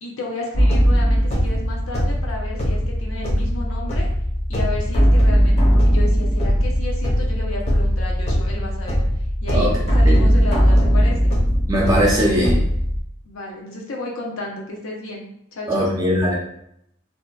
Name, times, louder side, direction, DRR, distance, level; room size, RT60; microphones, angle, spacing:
voice 1, 0.0-4.1 4.5-9.0 9.4-11.3 13.2-15.3 15.5-15.9, left 2 dB, 85° left, -1 dB, 0.6 m, -32 dB
sound 1, 0.5-13.0, equal, 30° left, 0.6 m, -19 dB
voice 2, 11.7-12.6 15.7-16.3, equal, 15° right, -5 dB, 0.5 m, -19 dB
2.7 x 2.1 x 2.2 m, 0.74 s
head